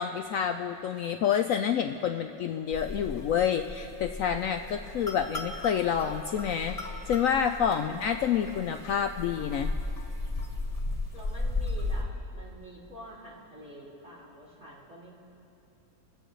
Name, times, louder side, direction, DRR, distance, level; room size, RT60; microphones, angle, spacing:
voice 1, 0.0-6.8 7.1-9.7, left 8 dB, 90° left, 6 dB, 0.7 m, -28 dB
sound 1, 2.7-12.0, left 2 dB, 20° left, 1.5 m, -35 dB
voice 2, 7.7-8.4 11.1-15.2, equal, 40° right, -6 dB, 3.2 m, -48 dB
28.0 x 15.5 x 3.2 m, 2.7 s
omnidirectional pair, 2.0 m